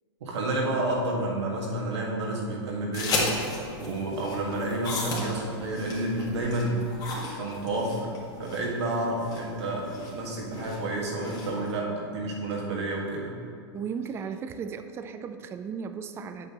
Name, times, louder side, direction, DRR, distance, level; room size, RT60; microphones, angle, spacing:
voice 1, 0.2-3.2 3.8-6.8 7.4-8.1 8.4-13.4, right 1 dB, 80° right, -3 dB, 1.8 m, -30 dB
sound 1, 2.9-11.7, left 2 dB, 25° left, 1.7 m, -35 dB
voice 2, 13.7-16.5, right 6 dB, 15° right, 9 dB, 0.3 m, -36 dB
8.1 x 7.7 x 3.0 m, 2.5 s
hypercardioid pair, 130°, 14 cm